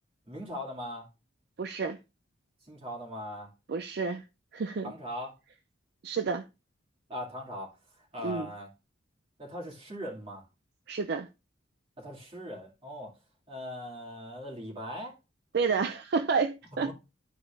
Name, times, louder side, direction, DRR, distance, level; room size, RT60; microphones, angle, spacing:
voice 1, 0.3-1.1 2.6-3.5 4.8-5.3 7.1-7.7 8.1-8.7 9.4-10.4 12.0-13.1 13.5-15.1 16.8-16.9, equal, 30° right, 2.4 m, -40 dB
voice 2, 1.6-2.0 3.7-4.3 4.5-4.9 6.0-6.5 8.2-8.5 10.9-11.3 15.5-16.9, right 5 dB, 55° right, 0.4 m, -30 dB
12.0 x 4.8 x 2.5 m
head